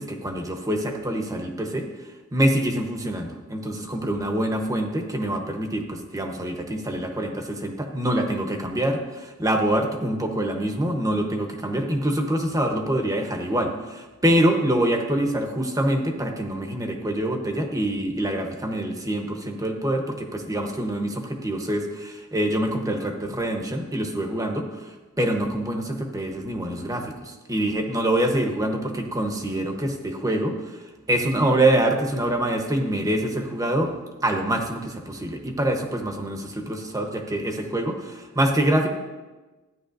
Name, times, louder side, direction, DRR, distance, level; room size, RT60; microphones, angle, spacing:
voice 1, 0.0-1.9 2.3-33.9 34.2-38.9, right 1 dB, 15° right, 3 dB, 1.0 m, -25 dB
14.0 x 9.7 x 2.6 m, 1.2 s
head